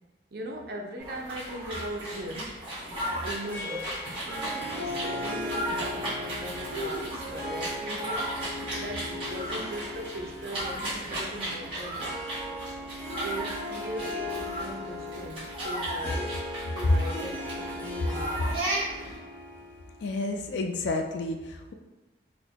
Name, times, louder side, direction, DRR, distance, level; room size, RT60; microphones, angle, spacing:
voice 1, 0.3-2.6 3.2-3.9 4.2-8.3 8.8-12.2 13.2-16.3 16.7-18.5, right 1 dB, 55° right, 1 dB, 0.5 m, -39 dB
sound 1, 1.0-19.2, right 1 dB, 30° right, 1.4 m, -35 dB
Harp, 3.5-20.2, left 1 dB, 10° left, 0.5 m, -38 dB
voice 2, 20.0-21.7, left 2 dB, 75° left, 4 dB, 0.4 m, -28 dB
4.2 x 2.1 x 2.8 m, 1.1 s
head